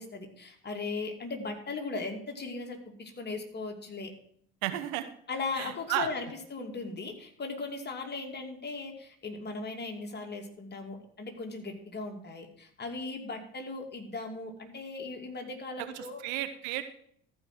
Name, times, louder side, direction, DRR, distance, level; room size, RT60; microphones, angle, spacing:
voice 1, 0.0-4.1 5.3-16.2, left 3 dB, 35° left, 3 dB, 2.7 m, -38 dB
voice 2, 4.6-5.1 5.6-6.1 15.9-16.8, right 13 dB, 75° right, 10 dB, 1.1 m, -33 dB
14.0 x 5.2 x 6.0 m, 0.63 s
hypercardioid pair, 55°, 30 cm